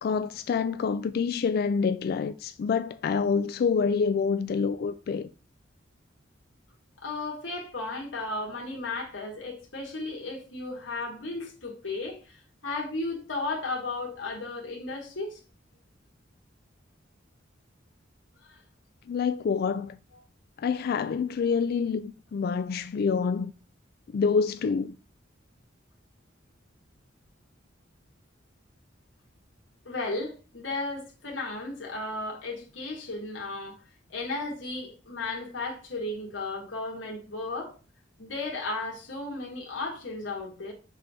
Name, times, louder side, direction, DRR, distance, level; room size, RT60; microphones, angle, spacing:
voice 1, 0.0-5.3 19.1-20.0 20.6-23.5 24.1-25.0, left 5 dB, 55° left, 0.3 m, -27 dB
voice 2, 7.0-15.4 18.4-18.6 29.9-33.8 34.1-37.7 38.2-40.7, left 2 dB, 85° left, 1.7 m, -34 dB
6.1 x 3.3 x 5.5 m
head